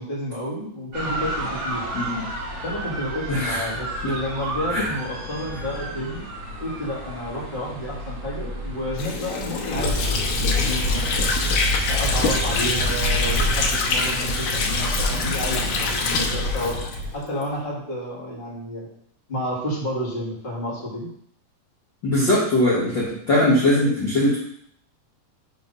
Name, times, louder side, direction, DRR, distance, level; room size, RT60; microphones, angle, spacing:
voice 1, 0.0-1.8 2.6-6.2 6.6-11.3 11.9-16.8 17.1-18.9 19.3-21.1, equal, 20° left, -5 dB, 1.5 m, -30 dB
sound 1, 0.9-16.2, right 1 dB, 70° right, 3.1 m, -33 dB
voice 2, 3.3-3.6 4.7-4.9 22.0-24.4, left 1 dB, 45° left, -7 dB, 1.6 m, -20 dB
Water / Sink (filling or washing), 8.9-17.5, left 4 dB, 80° left, 2.7 m, -25 dB
sound 2, 9.7-17.1, equal, 85° right, 2.5 m, -27 dB
7.8 x 3.4 x 5.4 m, 0.69 s
omnidirectional pair, 4.0 m